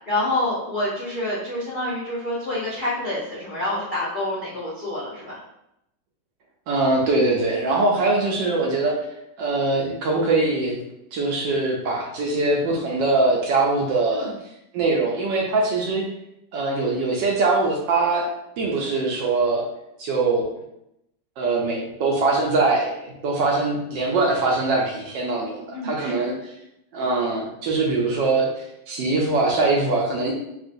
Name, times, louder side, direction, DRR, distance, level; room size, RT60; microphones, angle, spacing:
voice 1, 0.0-5.4 14.1-14.3 25.7-26.2, left 1 dB, 85° left, -10 dB, 0.4 m, -27 dB
voice 2, 6.7-9.0 9.4-10.8 11.1-14.3 14.7-16.0 16.5-18.3 18.6-19.7 20.0-20.5 21.4-26.5 26.9-28.5 28.9-30.3, right 3 dB, 75° right, -1 dB, 1.1 m, -22 dB
3.6 x 2.4 x 2.5 m, 0.82 s
omnidirectional pair, 2.2 m